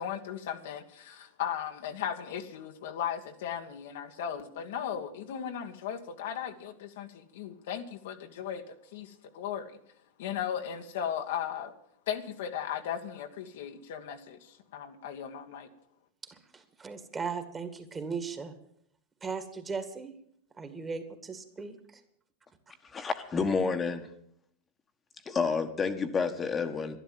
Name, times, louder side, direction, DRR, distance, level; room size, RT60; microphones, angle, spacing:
voice 1, 0.0-9.8 10.2-11.7 12.1-15.7, left 9 dB, 70° left, 6 dB, 1.4 m, -37 dB
voice 2, 16.2-18.6 19.2-20.1 20.6-22.0, right 5 dB, 20° right, 7 dB, 2.1 m, -38 dB
voice 3, 22.9-24.1 25.3-27.0, left 5 dB, 20° left, 8 dB, 1.4 m, -29 dB
11.5 x 11.5 x 7.6 m, 0.69 s
hypercardioid pair, 100°, 0 cm